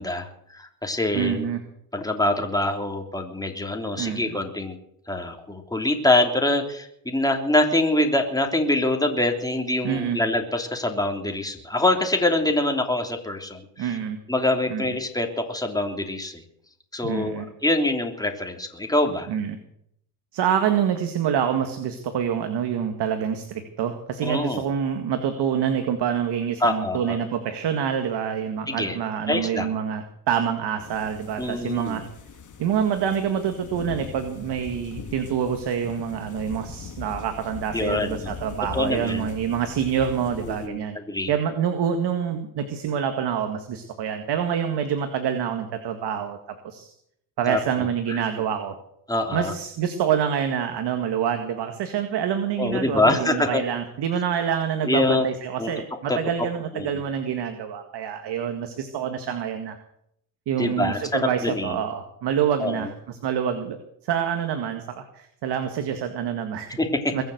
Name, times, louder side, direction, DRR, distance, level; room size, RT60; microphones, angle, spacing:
voice 1, 0.0-1.5 1.9-4.8 5.1-14.0 14.3-16.4 16.9-19.3 24.2-24.6 26.6-27.2 28.7-29.0 29.3-29.7 31.4-32.0 37.7-38.3 38.7-39.3 40.4-40.8 41.1-41.3 47.5-48.2 49.1-49.5 52.6-53.6 54.8-55.2 55.6-55.7 56.1-56.2 56.7-57.0 60.6-61.8 62.6-62.9 66.8-67.1, left 1 dB, 10° left, 3 dB, 3.2 m, -25 dB
voice 2, 1.1-1.6 4.0-4.4 9.8-10.2 13.8-14.2 14.7-14.8 17.0-17.5 19.3-19.6 20.3-32.0 32.6-41.0 41.3-46.4 46.6-46.9 47.4-48.8 49.3-59.8 60.5-63.8 64.0-66.7 67.1-67.2, right 8 dB, 60° right, 7 dB, 1.9 m, -26 dB
sound 1, 30.8-40.7, left 5 dB, 40° left, 2.3 m, -40 dB
22.0 x 7.4 x 7.9 m, 0.73 s
supercardioid pair, 85°, 45 cm